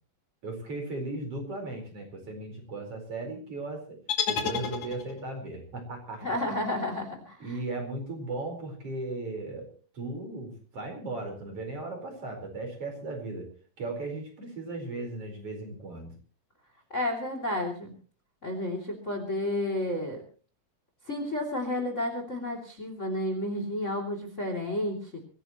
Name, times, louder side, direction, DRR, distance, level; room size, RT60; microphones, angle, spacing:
voice 1, 0.4-4.0 4.3-6.5 7.4-9.7 9.9-13.5 13.8-16.1, right 2 dB, 40° right, 3 dB, 5.4 m, -37 dB
sound 1, 4.1-5.4, left 6 dB, 55° left, 3.2 m, -31 dB
voice 2, 6.2-7.6 16.9-17.9 18.4-20.2 21.1-25.2, left 1 dB, 20° left, 4 dB, 2.9 m, -31 dB
24.5 x 17.0 x 3.1 m, 0.38 s
omnidirectional pair, 4.0 m